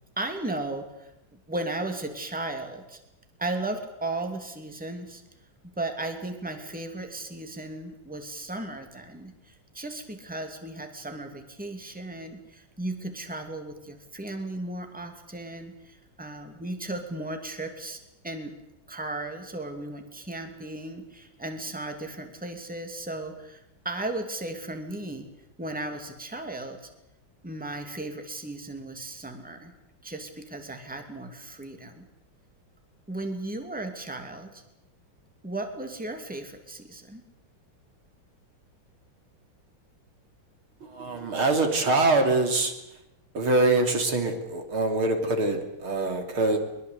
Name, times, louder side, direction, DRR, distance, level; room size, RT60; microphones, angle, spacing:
voice 1, 0.2-3.0 3.4-5.2 5.6-18.0 18.2-18.5 18.9-25.2 25.6-26.9 27.4-29.7 30.0-32.1 33.1-34.6 35.4-37.2, right 2 dB, 5° right, 5 dB, 2.7 m, -35 dB
voice 2, 40.8-42.7 43.3-46.6, right 2 dB, 80° right, 5 dB, 3.9 m, -24 dB
23.0 x 22.5 x 8.4 m, 0.87 s
omnidirectional pair, 2.3 m